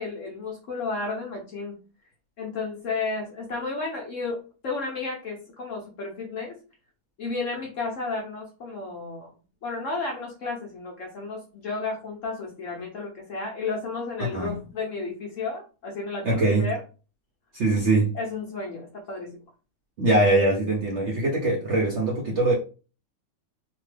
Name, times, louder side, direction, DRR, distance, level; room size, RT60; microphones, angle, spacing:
voice 1, 0.0-1.8 2.4-6.5 7.2-9.3 9.6-16.8 18.1-19.4, left 3 dB, 60° left, 0.9 m, -32 dB
voice 2, 16.2-16.7 17.5-18.2 20.0-22.5, right 2 dB, 60° right, 0.7 m, -22 dB
2.8 x 2.2 x 3.2 m
omnidirectional pair, 1.9 m